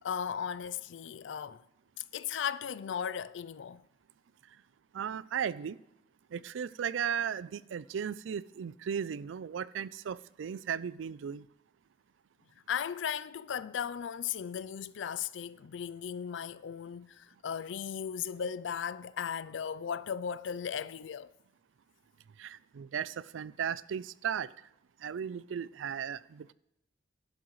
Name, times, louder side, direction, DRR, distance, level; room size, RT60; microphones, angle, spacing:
voice 1, 0.0-1.6 2.1-3.8 12.7-21.3, left 8 dB, 75° left, 0.4 m, -36 dB
voice 2, 4.9-5.8 6.3-11.5 22.4-24.5 25.0-26.5, right 8 dB, 85° right, 0.4 m, -36 dB
11.5 x 11.5 x 3.1 m
head